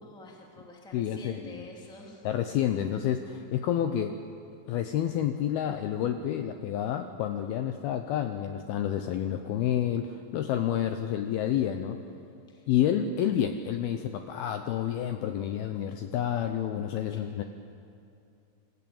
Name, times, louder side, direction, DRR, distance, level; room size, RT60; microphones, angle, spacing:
voice 1, 0.0-2.3 12.5-12.7 17.1-17.4, left 1 dB, 5° left, -1 dB, 0.6 m, -49 dB
voice 2, 0.9-1.7 2.2-4.2 4.7-12.0 12.7-17.4, left 10 dB, 80° left, 7 dB, 2.3 m, -29 dB
27.0 x 15.0 x 8.8 m, 2.5 s
omnidirectional pair, 5.3 m